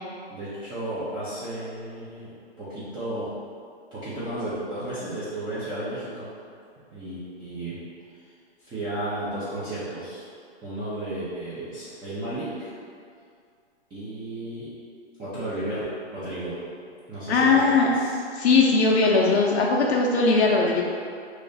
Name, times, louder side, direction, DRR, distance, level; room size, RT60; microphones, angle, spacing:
voice 1, 0.3-3.3 3.9-6.3 6.9-7.8 8.2-8.3 8.6-10.2 10.6-12.7 13.9-14.7 15.2-15.8 16.1-16.6 17.1-18.2, right 1 dB, 15° right, -12 dB, 0.6 m, -33 dB
voice 2, 17.3-17.9 18.4-20.8, left 4 dB, 90° left, -2 dB, 0.6 m, -19 dB
3.1 x 2.5 x 3.9 m, 2.3 s
hypercardioid pair, 140°, 32 cm